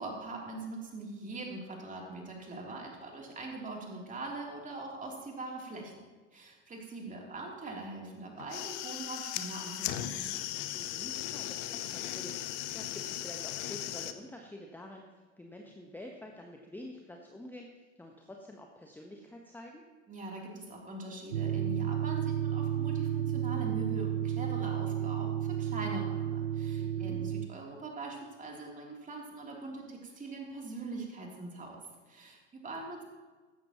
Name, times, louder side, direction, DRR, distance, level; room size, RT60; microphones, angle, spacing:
voice 1, 0.0-6.0 6.3-10.3 20.1-31.8 32.1-33.0, right 2 dB, 20° right, -1 dB, 3.2 m, -42 dB
sound 1, 8.4-14.1, left 13 dB, 50° left, 0.9 m, -37 dB
voice 2, 10.7-19.8 26.8-27.2, left 1 dB, 5° left, 2 dB, 1.1 m, -48 dB
sound 2, 21.3-27.5, right 10 dB, 85° right, 0.5 m, -32 dB
16.0 x 12.5 x 3.0 m, 1.3 s
figure-of-eight pair, 80°, 37 cm